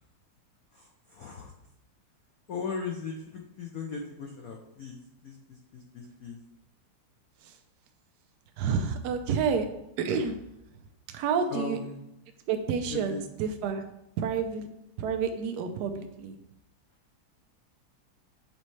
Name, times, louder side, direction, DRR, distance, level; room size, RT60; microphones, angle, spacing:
voice 1, 0.7-1.5 2.5-6.4 11.5-12.0 12.9-13.2, left 5 dB, 85° left, 1 dB, 0.7 m, -38 dB
voice 2, 8.6-9.7 10.0-10.4 10.8-11.8 12.5-13.9 14.2-14.7 15.0-16.4, right 6 dB, 75° right, 6 dB, 0.9 m, -29 dB
7.6 x 4.1 x 3.2 m, 0.84 s
omnidirectional pair, 2.3 m